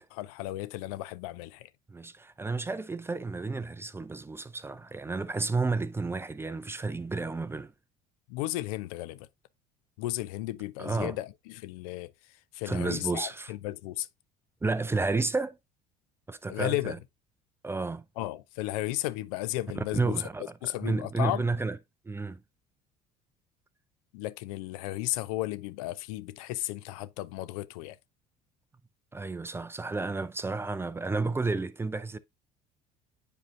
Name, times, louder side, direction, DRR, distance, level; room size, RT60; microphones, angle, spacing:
voice 1, 0.2-1.7 8.3-9.2 10.0-12.1 12.5-14.1 16.5-16.9 18.2-20.2 20.6-21.4 24.1-28.0, left 17 dB, 60° left, 0.5 m, -34 dB
voice 2, 1.9-7.7 10.8-11.2 12.7-13.5 14.6-15.6 16.3-17.0 17.6-18.0 19.8-21.8 22.1-22.4 29.1-32.2, right 3 dB, 10° right, 0.5 m, -31 dB
8.6 x 4.9 x 2.6 m
figure-of-eight pair, 60°, 21 cm